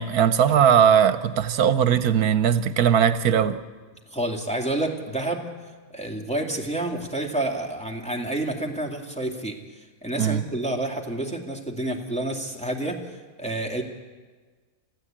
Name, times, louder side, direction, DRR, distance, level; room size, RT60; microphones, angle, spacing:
voice 1, 0.0-3.6 10.2-10.4, right 8 dB, 80° right, 12 dB, 1.3 m, -19 dB
voice 2, 4.1-5.5 5.9-13.8, right 1 dB, 5° left, 1 dB, 2.2 m, -29 dB
27.5 x 15.0 x 8.8 m, 1.4 s
omnidirectional pair, 1.6 m